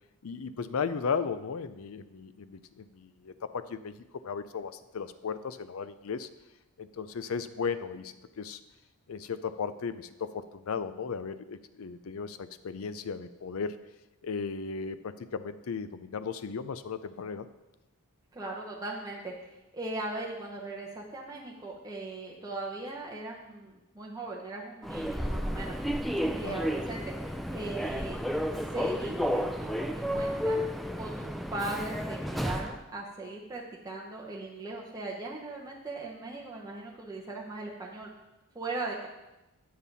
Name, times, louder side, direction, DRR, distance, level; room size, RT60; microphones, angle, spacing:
voice 1, 0.2-3.9 4.2-6.3 6.8-8.6 9.1-13.8 14.2-17.5 26.4-26.6, left 5 dB, 70° left, 13 dB, 0.5 m, -36 dB
voice 2, 18.3-19.3 19.7-25.7 26.3-27.0 27.5-28.2 28.7-30.6 31.0-38.1 38.5-39.1, right 2 dB, 15° right, -3 dB, 0.9 m, -39 dB
Human voice / Subway metro underground, 24.8-32.8, equal, ahead, 0.3 m, -32 dB
8.6 x 7.4 x 4.1 m, 1.0 s
head